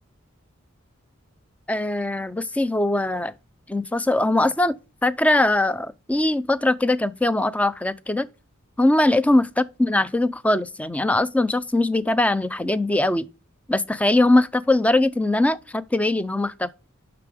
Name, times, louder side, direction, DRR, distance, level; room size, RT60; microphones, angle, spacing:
voice 1, 1.7-3.3 3.7-4.8 5.0-8.3 8.8-13.3 13.7-16.7, left 2 dB, 5° left, 0.3 m, -21 dB
7.0 x 5.9 x 4.8 m
head